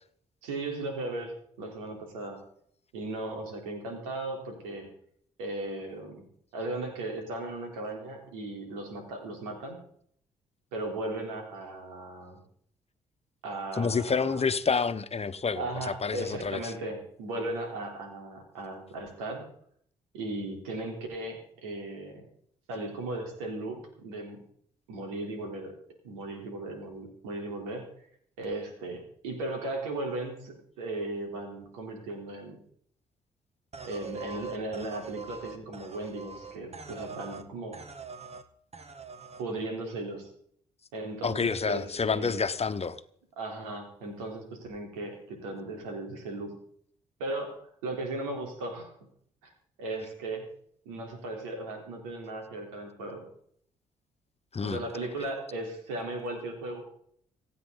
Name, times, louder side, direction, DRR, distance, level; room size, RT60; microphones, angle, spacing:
voice 1, 0.4-2.4 2.9-4.9 5.4-6.2 6.5-9.8 10.7-12.4 13.4-14.4 15.6-19.5 20.1-22.2 22.7-24.4 24.9-25.7 26.0-27.8 28.4-32.6 33.8-37.8 39.4-40.3 40.9-42.4 43.4-46.5 47.2-48.9 49.8-50.4 50.9-53.2 54.6-56.8, right 2 dB, 90° right, 3.8 m, -36 dB
voice 2, 13.7-16.6 41.2-43.0 54.5-54.8, left 5 dB, 35° left, 1.3 m, -28 dB
sound 1, 33.7-37.5 37.7-38.5 38.7-39.4, right 5 dB, 40° right, 1.8 m, -43 dB
26.5 x 9.4 x 4.1 m
hypercardioid pair, 45°, 17 cm